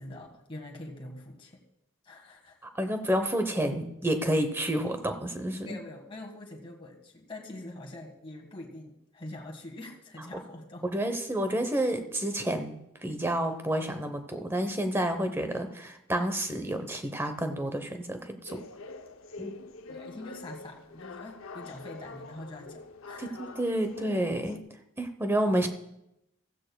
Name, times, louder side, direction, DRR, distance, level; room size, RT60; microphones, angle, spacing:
voice 1, 0.0-1.6 2.0-2.6 5.6-10.8 19.9-23.4 25.4-25.7, left 1 dB, 25° left, 0 dB, 1.7 m, -44 dB
voice 2, 2.7-5.8 10.9-18.7 19.4-19.6 23.2-24.6 25.0-25.7, right 1 dB, 10° right, 7 dB, 0.9 m, -29 dB
sound 1, 18.5-24.6, left 3 dB, 85° left, 0.7 m, -45 dB
15.5 x 14.5 x 2.3 m, 0.83 s
head